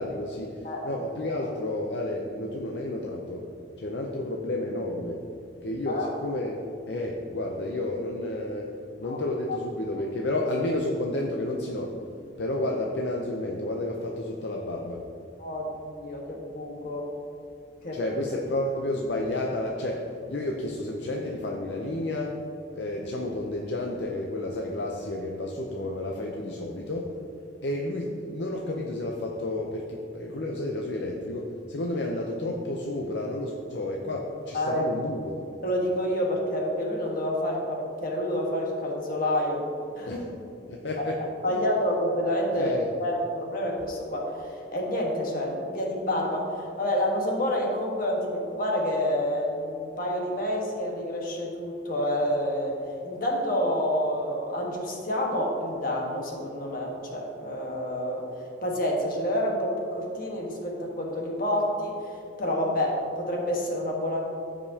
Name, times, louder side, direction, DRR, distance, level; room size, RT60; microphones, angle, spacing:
voice 1, 0.0-3.5 3.8-5.2 5.6-8.7 9.0-11.9 12.4-15.0 17.9-22.4 22.7-27.1 27.6-35.4 40.1-40.2 40.7-41.2 42.5-42.9, left 1 dB, 65° left, 0 dB, 0.6 m, -31 dB
voice 2, 0.6-1.0 1.3-1.5 5.9-6.1 9.0-9.2 9.5-9.6 15.4-17.1 17.8-18.0 34.5-34.9 35.6-39.7 39.9-40.3 41.0-41.1 41.4-42.7 43.0-52.8 53.0-58.3 58.6-64.2, left 1 dB, 50° left, -1 dB, 1.4 m, -28 dB
14.5 x 5.1 x 2.8 m, 2.6 s
head